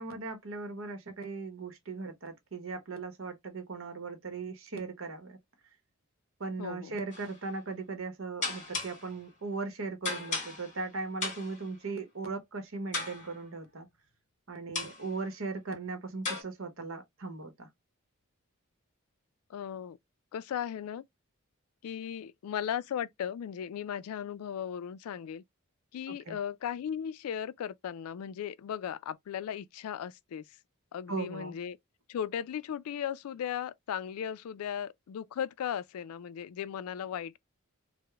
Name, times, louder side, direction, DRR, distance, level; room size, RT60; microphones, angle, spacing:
voice 1, 0.0-5.4 6.4-13.9 14.5-17.7 26.1-26.4 31.1-31.5, right 3 dB, 60° right, 0.8 m, -38 dB
voice 2, 6.6-7.0 19.5-20.0 20.3-21.0 21.8-25.4 25.9-30.5 30.9-31.8 32.1-37.4, left 9 dB, 75° left, 0.3 m, -37 dB
sound 1, 7.1-7.4 8.4-9.1 10.0-10.9 11.2-11.7 12.9-13.5 14.8-15.1 16.3-16.4, left 3 dB, 35° left, 1.6 m, -36 dB
4.7 x 2.1 x 2.2 m
head